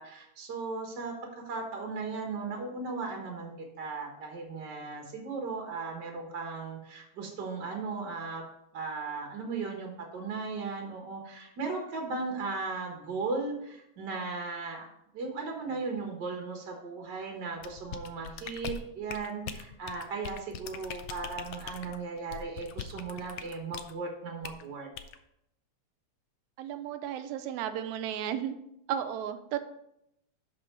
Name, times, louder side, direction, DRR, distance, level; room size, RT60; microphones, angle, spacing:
voice 1, 0.0-8.4 8.7-14.9 15.1-24.9, right 4 dB, 50° right, 1 dB, 1.5 m, -37 dB
sound 1, 17.6-23.9 24.4-24.6 25.0-25.2, left 8 dB, 80° left, 1.3 m, -41 dB
voice 2, 26.6-28.6 28.9-29.6, right 10 dB, 85° right, 9 dB, 1.9 m, -34 dB
11.5 x 4.5 x 4.5 m, 0.80 s
omnidirectional pair, 3.3 m